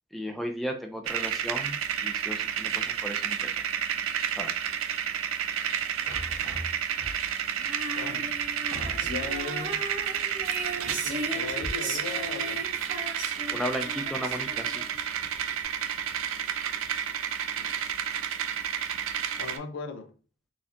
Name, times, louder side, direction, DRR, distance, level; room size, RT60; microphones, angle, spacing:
voice 1, 0.1-3.5 4.4-4.5 13.5-14.8, equal, ahead, 0.3 m, -35 dB
sound 1, 1.1-19.6, right 9 dB, 90° right, 0.4 m, -31 dB
sound 2, 6.0-7.5 8.2-8.3 8.7-9.5, right 1 dB, 70° right, 1.0 m, -40 dB
Female singing, 7.6-15.1, right 1 dB, 40° right, 0.8 m, -37 dB
voice 2, 7.9-8.3 9.0-10.0 10.7-12.7 13.3-13.7 17.6-17.9 19.4-20.1, left 4 dB, 70° left, 0.5 m, -39 dB
4.1 x 2.8 x 2.4 m
head